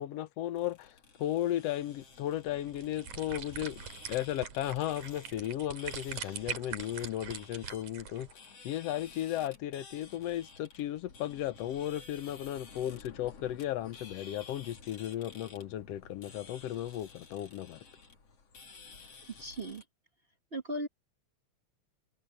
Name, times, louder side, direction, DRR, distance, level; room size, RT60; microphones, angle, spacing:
voice 1, 0.0-3.8 4.1-8.3 8.6-17.8, left 12 dB, 70° left, 1.7 m, -35 dB
sound 1, 0.5-19.8, left 4 dB, 55° left, 4.3 m, -53 dB
sound 2, 2.6-8.3, right 8 dB, 75° right, 3.6 m, -43 dB
voice 2, 19.4-19.8 20.5-20.9, right 1 dB, 55° right, 0.6 m, -37 dB
omnidirectional pair, 3.3 m